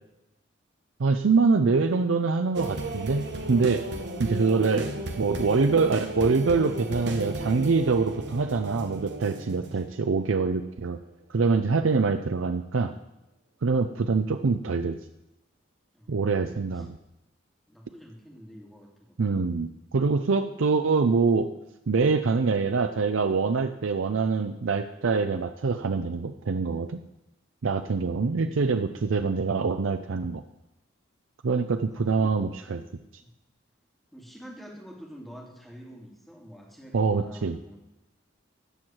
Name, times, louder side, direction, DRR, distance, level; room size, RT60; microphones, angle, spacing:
voice 1, 1.0-3.8 4.2-4.9 5.2-11.0 11.3-12.9 13.6-15.0 16.1-17.0 19.2-21.5 21.9-27.0 27.6-30.4 31.4-32.8 36.9-37.6, right 4 dB, 85° right, 8 dB, 0.5 m, -25 dB
sound 1, 2.5-10.5 10.9-11.1, right 1 dB, 60° right, 1.3 m, -35 dB
voice 2, 15.9-16.9 17.7-19.4 28.1-28.8 31.9-32.3 33.2-33.3 34.1-37.8, equal, ahead, -2 dB, 2.4 m, -47 dB
13.5 x 4.6 x 8.9 m, 0.92 s
head